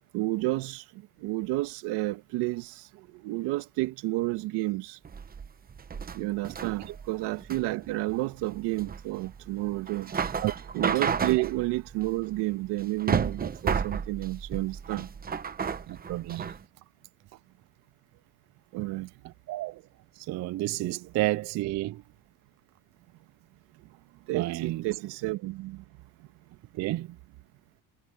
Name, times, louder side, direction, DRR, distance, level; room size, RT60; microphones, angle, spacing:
voice 1, 0.1-0.8 1.2-2.7 3.2-5.0 6.1-10.1 10.7-15.1 18.7-19.1 24.3-25.8, right 19 dB, 85° right, 2.1 m, -30 dB
sound 1, 5.1-16.6, right 6 dB, 20° right, 1.0 m, -32 dB
voice 2, 15.9-16.5 19.5-19.8 20.2-22.0 24.3-24.8 26.7-27.2, right 17 dB, 45° right, 0.4 m, -31 dB
cardioid pair, 135°, 40 cm